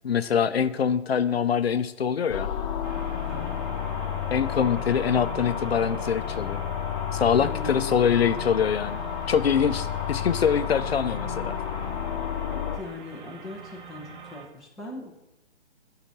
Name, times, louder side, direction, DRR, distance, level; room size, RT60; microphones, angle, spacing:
voice 1, 0.0-2.5 4.3-6.6 7.1-9.0 9.3-11.6, left 7 dB, 65° left, 12 dB, 0.6 m, -24 dB
sound 1, 2.3-12.8, left 8 dB, 30° left, 1.1 m, -31 dB
sound 2, 2.8-14.5, right 4 dB, 45° right, 1.5 m, -45 dB
voice 2, 3.3-3.6 7.4-8.2 12.5-15.1, left 2 dB, ahead, -5 dB, 0.6 m, -40 dB
8.9 x 5.8 x 6.5 m, 0.90 s
figure-of-eight pair, 140°, 34 cm